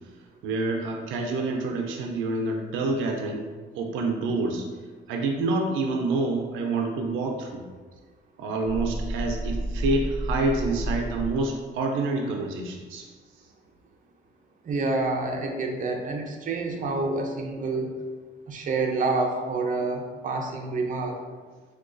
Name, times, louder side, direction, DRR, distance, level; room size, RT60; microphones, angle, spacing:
voice 1, 0.4-3.5 3.7-4.7 5.1-7.6 8.4-13.1, right 3 dB, 90° right, 2 dB, 0.5 m, -27 dB
sound 1, 8.6-11.5, right 1 dB, 20° left, 0.8 m, -30 dB
voice 2, 14.6-18.0 18.5-21.2, right 3 dB, 40° right, 2 dB, 0.5 m, -28 dB
4.5 x 2.3 x 2.5 m, 1.4 s
cardioid pair, 90°, 20 cm